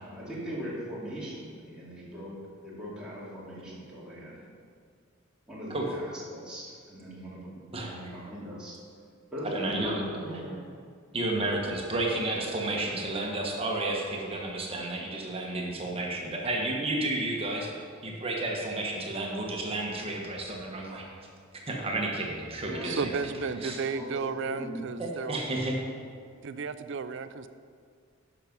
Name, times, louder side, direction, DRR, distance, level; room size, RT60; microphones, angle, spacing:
voice 1, 0.0-4.4 5.5-8.8 9.3-10.6 22.6-23.3 23.6-24.8, equal, 5° right, -8 dB, 2.6 m, -40 dB
voice 2, 9.5-10.0 11.1-17.7 18.0-21.1 21.7-23.0 23.6-23.8 25.0-25.8, right 2 dB, 30° right, -1 dB, 1.3 m, -31 dB
voice 3, 22.8-25.4 26.4-27.5, right 5 dB, 60° right, 12 dB, 0.5 m, -33 dB
11.5 x 6.0 x 5.2 m, 2.2 s
head